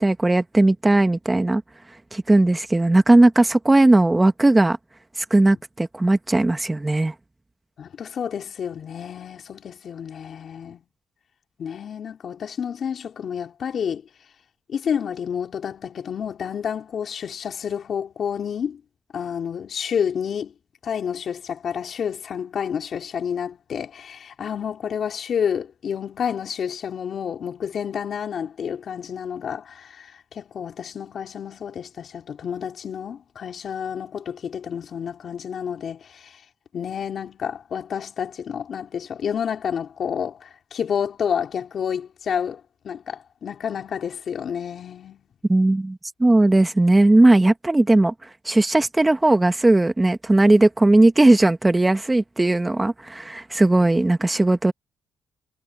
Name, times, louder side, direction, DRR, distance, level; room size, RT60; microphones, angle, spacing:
voice 1, 0.0-1.6 2.1-4.8 5.2-7.1 45.5-48.1 48.4-54.7, right 2 dB, 15° right, 1.4 m, -17 dB
voice 2, 7.8-10.8 11.6-14.0 14.7-18.8 19.1-20.5 20.8-36.4 36.7-45.2, left 7 dB, 55° left, 3.8 m, -29 dB
cardioid pair, 90°, 0 cm